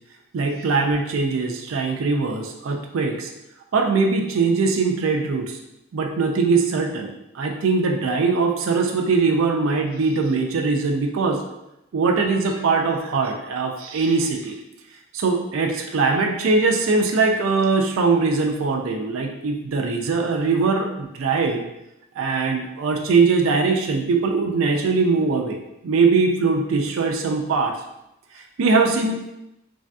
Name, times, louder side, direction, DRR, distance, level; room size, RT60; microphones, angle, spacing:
voice 1, 0.3-3.3 3.7-5.6 5.9-11.4 11.9-14.5 15.1-21.6 22.2-25.6 25.8-27.7 28.3-29.2, right 4 dB, 75° right, 2 dB, 0.4 m, -21 dB
3.3 x 2.6 x 2.2 m, 0.88 s
head